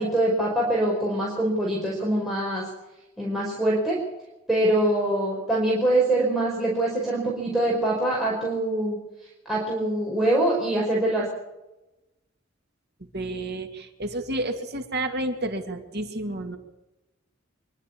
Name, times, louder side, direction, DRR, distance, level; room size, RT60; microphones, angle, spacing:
voice 1, 0.0-2.7 3.2-4.0 4.5-9.0 9.4-11.3, right 1 dB, ahead, -6 dB, 5.1 m, -24 dB
voice 2, 13.1-16.6, right 1 dB, 55° right, 4 dB, 2.5 m, -30 dB
25.0 x 12.5 x 8.7 m, 0.99 s
head